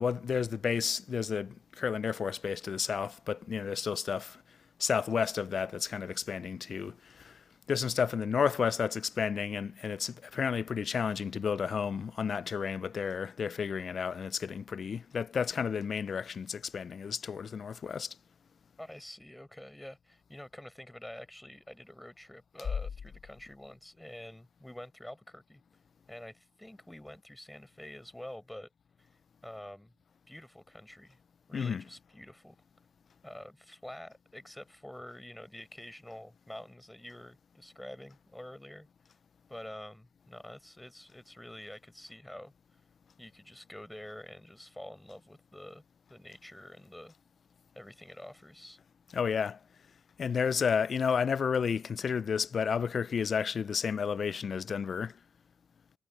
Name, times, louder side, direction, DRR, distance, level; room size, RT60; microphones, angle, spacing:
voice 1, 0.0-4.4 4.8-7.4 7.7-18.1 31.5-31.8 49.1-49.6 50.2-55.1, left 6 dB, 45° left, 0.4 m, -31 dB
voice 2, 18.8-25.6 26.1-28.7 29.0-29.1 29.4-29.9 30.3-31.2 31.5-32.6 33.2-38.9 39.5-42.5 43.2-45.8 46.1-47.1 47.7-48.8, left 1 dB, 5° left, 4.8 m, -47 dB
cardioid pair, 90°, 0 cm